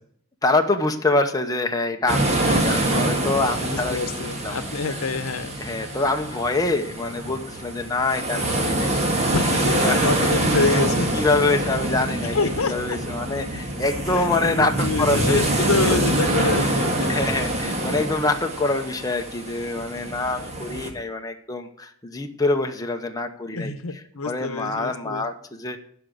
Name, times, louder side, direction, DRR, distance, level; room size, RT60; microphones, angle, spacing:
voice 1, 0.4-4.7 5.6-8.9 9.8-10.1 11.1-12.4 12.6-16.0 16.6-16.8 17.1-23.7 24.2-25.8, left 2 dB, 15° left, 4 dB, 0.8 m, -25 dB
sound 1, 2.1-20.9, right 1 dB, 30° right, 1.7 m, -25 dB
voice 2, 2.3-2.7 3.6-5.6 9.3-11.3 12.2-13.0 14.1-17.3 23.5-25.2, left 4 dB, 80° left, 11 dB, 0.9 m, -27 dB
12.0 x 4.9 x 7.8 m, 0.64 s
head